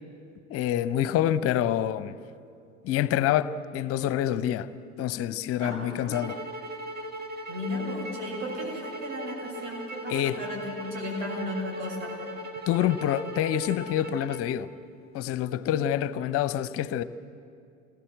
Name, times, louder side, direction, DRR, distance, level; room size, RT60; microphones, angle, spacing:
voice 1, 0.5-2.1 2.8-4.7 5.0-6.4 10.1-10.4 12.7-14.7 15.1-17.0, left 11 dB, 40° left, 0.8 m, -27 dB
voice 2, 5.6-6.2 7.5-12.1, left 1 dB, 70° right, 6.9 m, -35 dB
sound 1, 6.1-14.5, equal, 25° right, 2.3 m, -38 dB
27.5 x 20.0 x 7.8 m
figure-of-eight pair, 70°, 36 cm